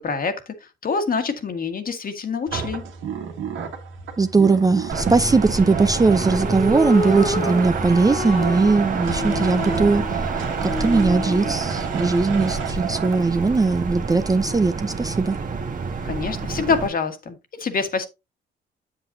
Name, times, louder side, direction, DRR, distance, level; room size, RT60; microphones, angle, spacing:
voice 1, 0.0-2.8 16.0-18.1, left 5 dB, 45° left, 1.6 m, -26 dB
sound 1, 2.5-13.2, right 6 dB, 80° right, 1.8 m, -31 dB
voice 2, 4.2-10.3 10.6-15.4, right 3 dB, 20° right, 0.5 m, -19 dB
sound 2, 4.9-16.9, right 4 dB, 40° right, 1.5 m, -28 dB
sound 3, 6.3-11.7, left 3 dB, 30° left, 1.3 m, -30 dB
7.9 x 7.7 x 2.7 m
cardioid pair, 90°, 20 cm